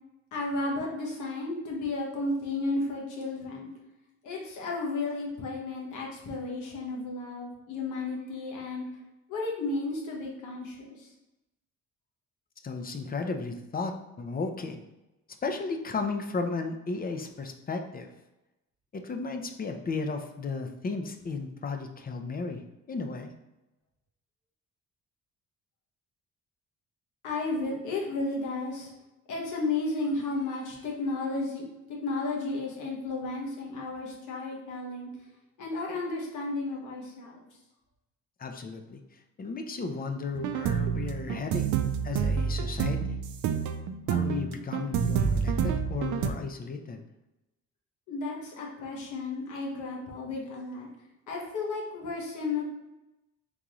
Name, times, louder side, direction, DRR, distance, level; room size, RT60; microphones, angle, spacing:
voice 1, 0.3-3.7 4.2-8.8 9.3-10.7 27.2-28.9 29.3-31.6 31.9-35.1 35.6-37.4 48.1-50.9 51.3-52.7, left 3 dB, 80° left, -2 dB, 1.3 m, -33 dB
voice 2, 12.6-14.8 15.4-18.1 18.9-22.6 22.9-23.3 38.4-41.7 42.0-43.2 44.1-47.0, left 4 dB, 30° left, 6 dB, 0.5 m, -34 dB
sound 1, 40.4-46.3, right 7 dB, 75° right, 0.5 m, -28 dB
3.8 x 3.7 x 3.0 m, 0.98 s
cardioid pair, 90°, 30 cm